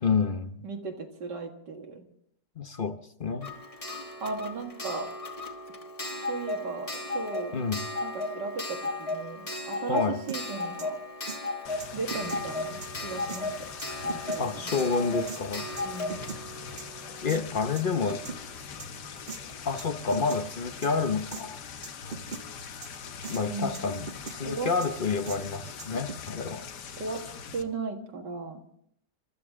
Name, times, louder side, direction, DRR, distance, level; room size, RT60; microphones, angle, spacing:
voice 1, 0.0-0.7 2.6-3.5 7.5-7.9 9.9-10.2 14.4-15.7 17.2-18.2 19.6-21.6 23.3-26.7, left 4 dB, 45° left, 0.7 m, -29 dB
voice 2, 0.6-2.1 4.2-5.1 6.2-7.6 8.0-11.0 11.9-13.7 14.0-14.7 15.8-16.2 23.5-23.9 24.4-24.7 27.0-27.3 27.5-28.6, right 4 dB, 85° right, 2.4 m, -36 dB
Clock, 3.4-18.0 19.2-19.3 19.5-19.6, left 2 dB, 25° left, 1.2 m, -35 dB
sound 1, 10.3-10.4 10.8-10.9 11.3-11.4 11.8-12.4 12.8-12.9 13.3-13.4 13.8-14.4 14.8-14.9 15.3-15.4 15.8-16.4 16.8-16.9 17.3-17.4 17.8-18.4 18.8-18.9 19.3-19.4 19.8-19.9 20.1-20.4 20.8-20.9 21.3-21.4 21.8-22.4 22.8-22.9 23.2-23.4 23.7-24.4 24.8-24.9 25.3-25.4 25.8-26.3, right 5 dB, 40° right, 1.0 m, -39 dB
sound 2, 11.6-27.6, left 6 dB, 80° left, 1.7 m, -42 dB
29.5 x 13.0 x 3.7 m
omnidirectional pair, 1.8 m